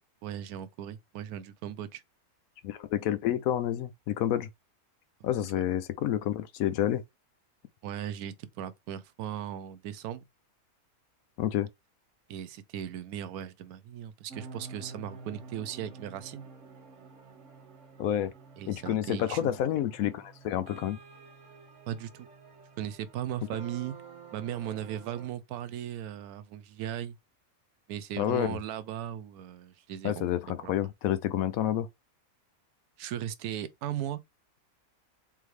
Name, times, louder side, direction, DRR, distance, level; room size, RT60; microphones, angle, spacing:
voice 1, 0.2-2.0 5.2-5.6 7.8-10.3 12.3-16.5 18.6-19.6 21.9-22.3 22.8-24.0 24.3-27.2 27.9-30.2 30.6-30.9 33.0-34.2, right 10 dB, 90° right, 1.1 m, -37 dB
voice 2, 2.6-4.5 5.2-7.0 11.4-11.7 18.0-18.3 18.7-21.0 28.2-28.6 30.0-31.9, left 11 dB, 75° left, 1.0 m, -29 dB
sound 1, 14.3-25.3, right 4 dB, 60° right, 1.5 m, -49 dB
3.8 x 3.5 x 3.2 m
omnidirectional pair, 1.5 m